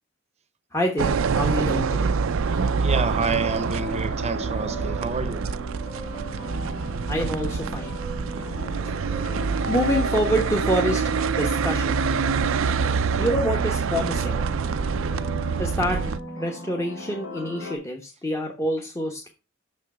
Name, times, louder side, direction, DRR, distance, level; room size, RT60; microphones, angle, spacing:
voice 1, 0.7-2.1 6.7-6.8 7.1-8.0 8.3-11.0 11.3-12.0 13.2-14.4 15.6-19.3, equal, 15° left, 1.0 m, -27 dB
sound 1, 1.0-16.2, right 5 dB, 70° right, 0.4 m, -26 dB
sound 2, 2.4-17.8, equal, 80° left, 3.0 m, -37 dB
voice 2, 2.8-5.4 12.9-13.2, right 4 dB, 30° right, 0.8 m, -28 dB
6.4 x 6.3 x 4.8 m
head